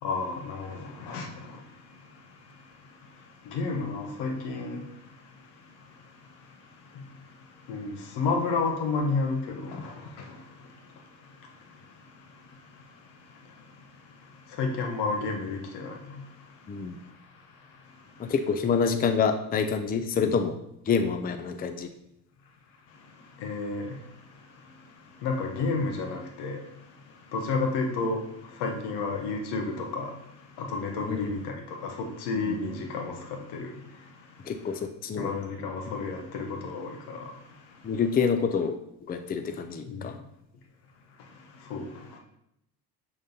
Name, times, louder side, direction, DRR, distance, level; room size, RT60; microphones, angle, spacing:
voice 1, 0.0-18.3 20.1-20.3 22.9-34.8 35.2-38.0 39.8-40.2 41.2-42.2, left 3 dB, 80° left, 1.2 m, -34 dB
voice 2, 18.2-20.5 20.9-21.9 31.0-31.3 32.5-32.6 34.5-35.3 37.8-38.7 39.1-40.2, left 6 dB, 25° left, 0.5 m, -27 dB
7.0 x 3.9 x 3.9 m
cardioid pair, 95°, 40 cm